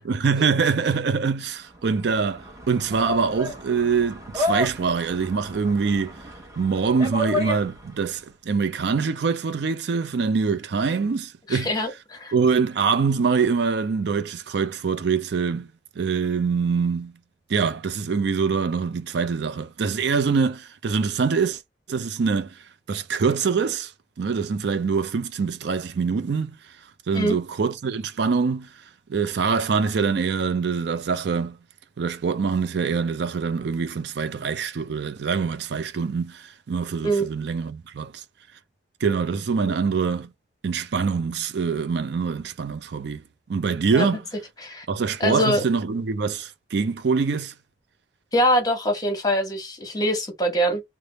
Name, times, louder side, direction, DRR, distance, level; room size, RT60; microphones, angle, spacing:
voice 1, 0.0-6.2 6.6-11.7 12.3-15.7 16.0-17.1 17.5-21.6 21.9-23.9 24.2-26.7 27.1-28.7 29.1-31.6 32.0-38.2 39.0-40.3 40.6-43.2 43.5-44.2 44.9-47.5, right 5 dB, 65° right, 0.4 m, -24 dB
sound 1, 1.7-8.1, left 2 dB, 20° right, 0.9 m, -32 dB
voice 2, 11.5-12.3 27.1-27.4 37.0-37.3 39.6-39.7 43.9-44.2 44.6-44.8 45.2-45.6 48.3-50.8, equal, 20° left, 1.1 m, -23 dB
3.4 x 2.1 x 3.8 m
head